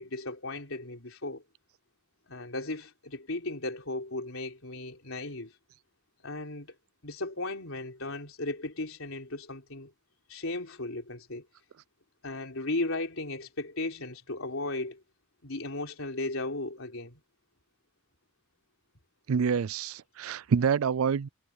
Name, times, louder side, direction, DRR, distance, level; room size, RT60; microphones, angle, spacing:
voice 1, 0.0-1.4 2.3-5.5 6.2-6.7 7.0-9.9 10.3-11.5 12.2-15.0 15.4-17.2, left 2 dB, 75° left, 4.0 m, -36 dB
voice 2, 19.3-21.3, right 6 dB, 80° right, 0.4 m, -27 dB
head